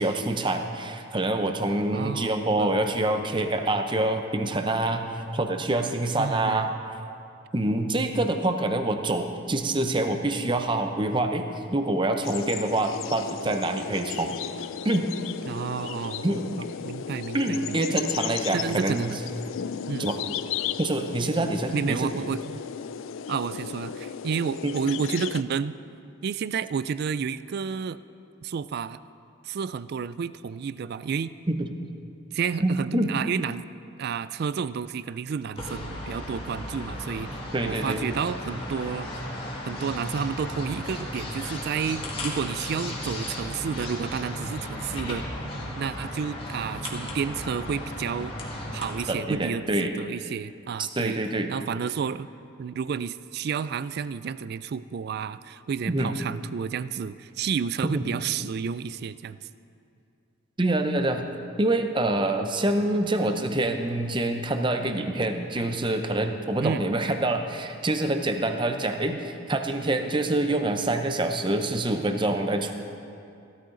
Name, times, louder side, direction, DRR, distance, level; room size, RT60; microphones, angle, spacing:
voice 1, 0.0-6.7 7.5-14.4 14.8-15.1 16.2-16.4 17.3-19.1 20.0-20.2 20.8-22.1 24.6-24.8 31.5-31.7 32.6-33.2 37.5-38.0 49.1-49.9 50.8-51.5 55.9-56.1 57.8-58.1 60.6-61.3 61.6-72.7, right 2 dB, 25° right, 6 dB, 0.7 m, -26 dB
voice 2, 1.9-2.7 6.2-6.6 15.5-17.7 18.5-19.2 19.9-20.1 21.7-22.6 23.3-25.8 26.2-28.0 28.4-29.0 29.4-31.3 32.3-33.7 34.0-39.2 39.7-45.3 45.8-48.4 48.7-51.2 51.5-52.3 52.6-59.4 66.6-66.9, right 6 dB, 50° right, 15 dB, 0.3 m, -31 dB
sound 1, 12.2-25.4, left 8 dB, 75° left, 0.4 m, -35 dB
sound 2, 35.5-49.1, left 1 dB, 25° left, 1.9 m, -35 dB
15.5 x 13.0 x 3.9 m, 2.5 s
head